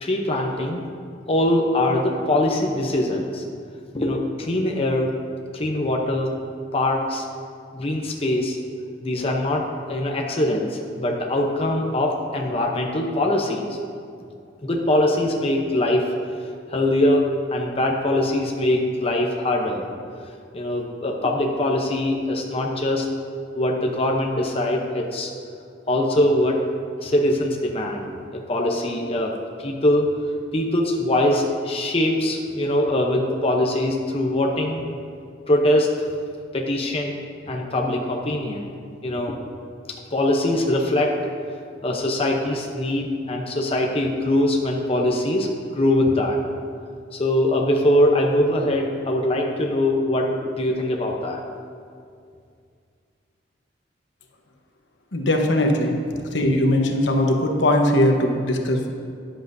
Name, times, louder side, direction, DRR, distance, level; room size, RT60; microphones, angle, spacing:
voice 1, 0.0-0.8 1.3-3.4 3.9-5.2 5.5-6.3 6.7-7.3 7.7-8.6 9.0-13.8 14.6-16.1 16.7-19.9 20.5-23.1 23.5-25.3 25.9-26.6 27.0-30.1 30.5-34.8 35.5-35.9 36.5-37.2 37.5-38.7 39.0-39.4 40.1-41.2 41.8-46.4 47.1-51.4, left 1 dB, 30° left, 0 dB, 0.8 m, -22 dB
voice 2, 55.1-55.9 56.3-58.9, left 1 dB, 75° left, 2 dB, 1.1 m, -20 dB
13.5 x 10.0 x 2.7 m, 2.3 s
head